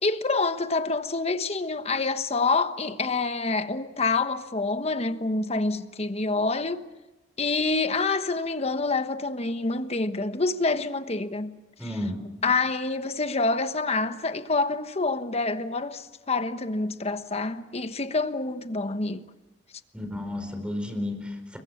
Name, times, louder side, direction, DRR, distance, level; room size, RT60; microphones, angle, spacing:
voice 1, 0.0-6.9 7.4-11.6 12.4-19.2, left 3 dB, 35° left, 1.2 m, -27 dB
voice 2, 11.8-12.3 19.9-21.6, left 1 dB, 5° right, 4.5 m, -32 dB
28.5 x 23.5 x 7.2 m
head